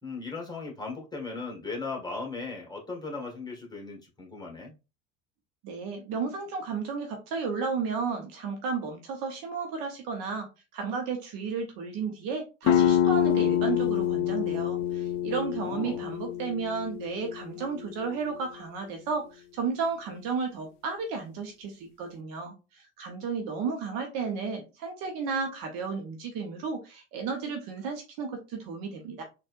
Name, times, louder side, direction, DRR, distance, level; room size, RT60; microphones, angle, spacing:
voice 1, 0.0-4.7 15.3-16.0, left 3 dB, 10° left, 1.5 m, -38 dB
voice 2, 5.6-29.2, right 5 dB, 55° right, 1.0 m, -33 dB
sound 1, 12.7-18.1, left 10 dB, 45° left, 0.4 m, -26 dB
4.1 x 2.6 x 2.5 m
hypercardioid pair, 75°, 40 cm